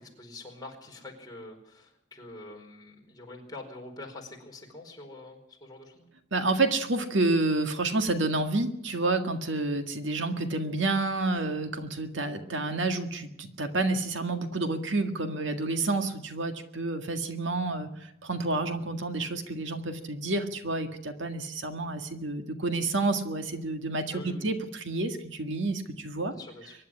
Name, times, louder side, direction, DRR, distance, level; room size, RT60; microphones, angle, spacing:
voice 1, 0.0-6.1 24.1-24.5 26.3-26.7, left 2 dB, 20° left, 0 dB, 4.6 m, -45 dB
voice 2, 6.3-26.3, right 2 dB, 70° right, 7 dB, 1.8 m, -29 dB
24.0 x 11.0 x 10.0 m, 0.78 s
head